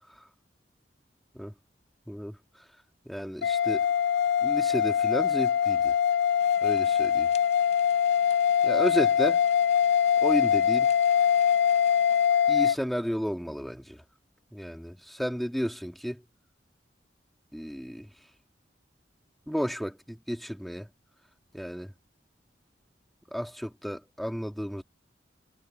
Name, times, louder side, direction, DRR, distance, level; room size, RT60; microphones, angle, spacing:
voice 1, 3.1-3.9 4.4-5.9 6.6-7.3 8.6-9.4 10.2-10.9 12.5-14.0 14.5-16.2 17.5-18.1 19.5-20.9 21.5-21.9 23.3-24.8, equal, ahead, 2.0 m, -32 dB
sound 1, 3.4-12.8, left 8 dB, 65° left, 0.4 m, -23 dB
sound 2, 6.4-12.3, left 6 dB, 40° left, 5.7 m, -53 dB
head